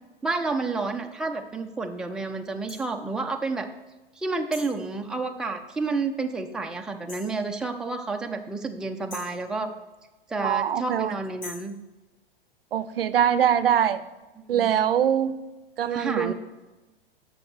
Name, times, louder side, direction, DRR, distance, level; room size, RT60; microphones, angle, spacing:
voice 1, 0.2-3.7 4.2-9.7 10.3-11.8 14.5-14.7 15.9-16.3, right 3 dB, ahead, 3 dB, 0.5 m, -30 dB
sound 1, 2.7-2.8 4.5-4.8 7.1-7.4 9.1-9.4 11.4-11.7, left 2 dB, 70° left, 3.2 m, -41 dB
voice 2, 10.4-11.1 12.7-14.0 14.5-15.3 15.8-16.3, right 9 dB, 70° right, 14 dB, 0.5 m, -23 dB
14.5 x 5.4 x 3.2 m, 1.1 s
figure-of-eight pair, 95°, 29 cm